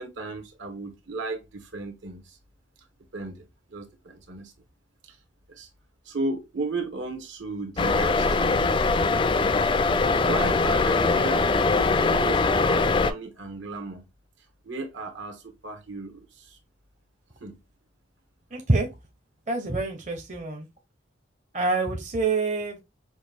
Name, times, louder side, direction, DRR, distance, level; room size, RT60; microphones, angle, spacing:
voice 1, 0.0-2.4 3.1-4.5 5.0-5.2 5.5-5.7 6.0-8.7 9.2-9.4 9.9-14.0 14.6-16.6 17.4-17.6, right 3 dB, 75° right, 1.3 m, -35 dB
sound 1, 7.8-13.1, left 3 dB, 25° left, 0.3 m, -22 dB
voice 2, 18.5-18.9 19.5-20.7 21.5-22.8, right 3 dB, 40° right, 0.8 m, -26 dB
6.2 x 2.5 x 3.3 m
head